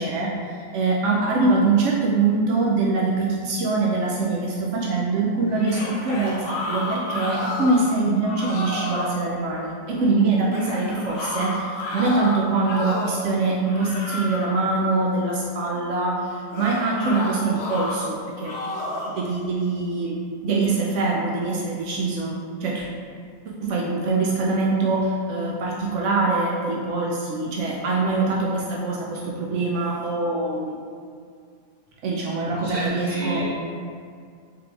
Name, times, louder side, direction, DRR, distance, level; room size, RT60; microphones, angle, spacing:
voice 1, 0.0-18.5 19.1-20.2 20.4-22.3 22.6-22.9 23.6-30.7 32.0-33.5, right 3 dB, 80° right, -3 dB, 0.6 m, -23 dB
sound 1, 5.5-7.9 8.2-9.1 10.5-13.2 13.6-14.6 16.5-18.0 18.4-19.2, left 2 dB, 65° left, 0.6 m, -31 dB
voice 2, 32.6-33.5, equal, 25° right, -10 dB, 1.4 m, -31 dB
3.9 x 3.6 x 3.3 m, 2.2 s
omnidirectional pair, 1.8 m